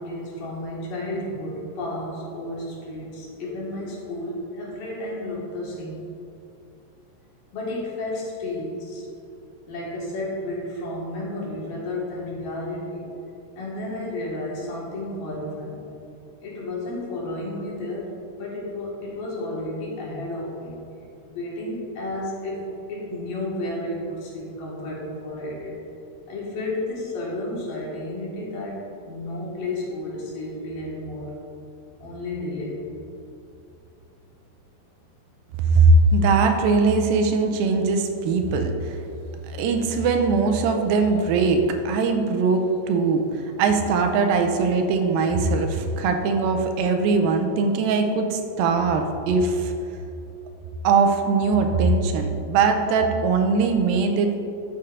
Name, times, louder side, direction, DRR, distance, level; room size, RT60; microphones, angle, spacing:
voice 1, 0.0-6.0 7.5-9.0 9.7-13.1 13.6-15.8 16.4-20.8 21.3-25.8 26.3-31.3 32.0-32.8 38.4-38.5, left 1 dB, 75° left, -5 dB, 3.5 m, -32 dB
voice 2, 35.7-39.0 39.5-49.7 50.8-54.4, right 4 dB, 90° right, 5 dB, 2.5 m, -21 dB
13.0 x 7.2 x 2.6 m, 2.7 s
omnidirectional pair, 4.1 m